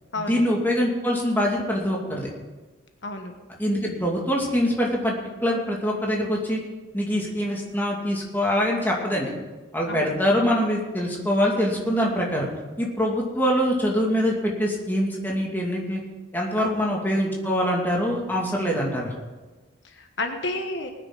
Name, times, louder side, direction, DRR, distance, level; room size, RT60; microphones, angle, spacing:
voice 1, 0.2-2.3 3.6-5.2 5.4-6.6 6.9-9.3 9.7-12.5 12.8-16.0 16.3-19.1, equal, 10° left, -2 dB, 2.5 m, -24 dB
voice 2, 3.0-3.3 9.9-10.3 16.6-16.8 19.8-20.9, left 2 dB, 70° left, 5 dB, 1.3 m, -31 dB
20.0 x 9.9 x 4.1 m, 1.3 s
head